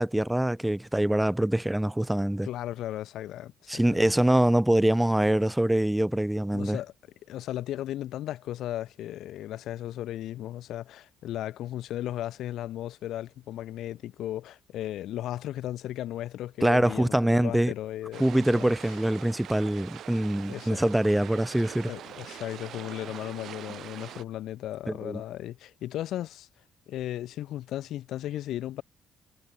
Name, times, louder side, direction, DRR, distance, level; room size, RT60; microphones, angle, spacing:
voice 1, 0.0-2.5 3.7-6.8 16.6-17.7 18.2-21.9 24.9-25.2, right 1 dB, 5° right, 0.9 m, -24 dB
voice 2, 2.4-4.1 6.5-6.9 7.3-18.3 18.5-19.0 20.5-20.8 21.8-26.5 26.9-28.8, left 13 dB, 80° left, 1.0 m, -36 dB
sound 1, 18.1-24.2, right 11 dB, 70° right, 4.3 m, -43 dB
cardioid pair, 90°, 0 cm